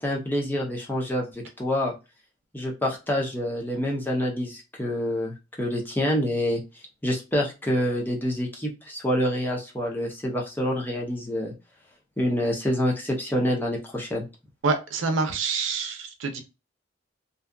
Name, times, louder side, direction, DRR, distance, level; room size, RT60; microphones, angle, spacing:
voice 1, 0.0-1.9 2.5-6.6 7.0-11.5 12.2-14.2, equal, 10° left, -1 dB, 0.6 m, -27 dB
voice 2, 14.6-16.4, right 4 dB, 90° right, 6 dB, 0.6 m, -26 dB
2.6 x 2.3 x 2.2 m, 0.27 s
head